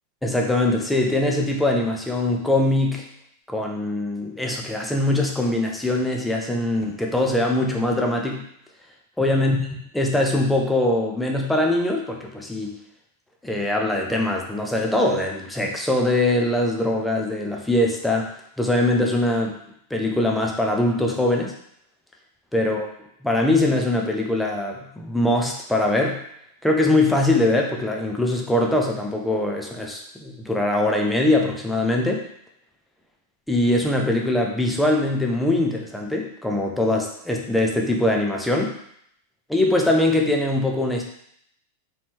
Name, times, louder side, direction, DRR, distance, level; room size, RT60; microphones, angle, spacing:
voice 1, 0.2-3.0 3.5-8.5 9.2-9.7 9.9-12.8 13.4-18.3 18.6-19.6 19.9-21.5 22.5-22.8 23.2-26.2 26.6-32.2 33.5-38.7 39.5-41.0, left 1 dB, 5° left, 0 dB, 0.7 m, -22 dB
4.2 x 3.4 x 2.9 m, 0.72 s
figure-of-eight pair, 90°, 0 cm